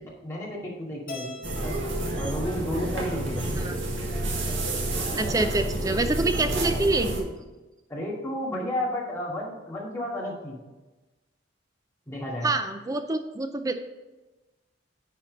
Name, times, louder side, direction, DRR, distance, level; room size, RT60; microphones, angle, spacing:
voice 1, 0.8-1.4 1.6-1.8 2.1-3.6 7.9-10.6 12.1-12.5, left 1 dB, 15° left, -6 dB, 2.4 m, -32 dB
Keyboard (musical), 1.1-3.4, left 1 dB, 45° left, 1.6 m, -43 dB
sound 1, 1.4-7.2, right 1 dB, 70° right, 1.9 m, -29 dB
voice 2, 5.1-7.3 12.4-13.9, right 2 dB, 20° right, 8 dB, 0.4 m, -26 dB
10.0 x 4.4 x 5.3 m, 1.1 s
head